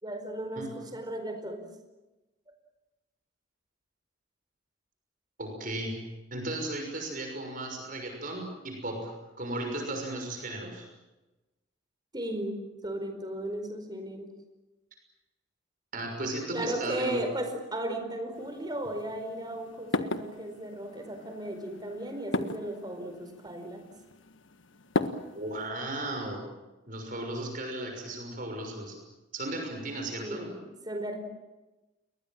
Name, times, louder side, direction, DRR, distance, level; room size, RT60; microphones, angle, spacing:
voice 1, 0.0-1.7 12.1-14.3 16.5-23.8 30.2-31.2, right 1 dB, 20° right, 6 dB, 4.7 m, -36 dB
voice 2, 5.4-5.9 6.3-9.1 9.4-10.9 15.9-17.2 25.3-26.4 26.9-29.0 29.3-30.5, right 1 dB, 45° right, 3 dB, 6.1 m, -35 dB
sound 1, 18.3-25.7, left 2 dB, 80° left, 1.5 m, -37 dB
29.0 x 22.0 x 7.5 m, 1.1 s
head